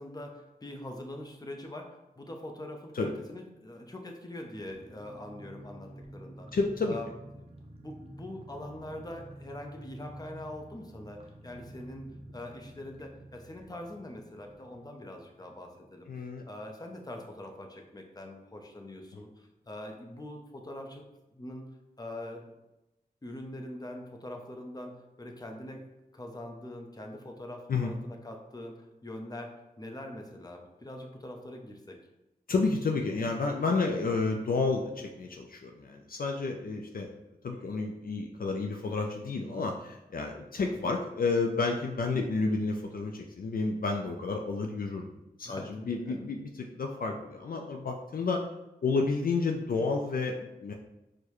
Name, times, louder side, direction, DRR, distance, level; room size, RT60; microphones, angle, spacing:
voice 1, 0.0-6.5 6.9-7.4 7.8-21.0 21.3-21.7 22.0-22.5 23.2-29.5 29.8-32.0 40.7-40.8 45.4-46.3, left 1 dB, 25° left, 2 dB, 0.7 m, -43 dB
sound 1, 4.5-16.9 17.1-17.2 17.5-17.8, right 1 dB, 40° right, 0.7 m, -50 dB
voice 2, 6.5-7.0 16.1-16.4 27.7-27.9 32.5-37.1 37.4-45.0 45.4-48.4 48.8-50.7, left 3 dB, 65° left, 2 dB, 0.4 m, -30 dB
4.5 x 2.2 x 2.9 m, 0.93 s
cardioid pair, 40°, 16 cm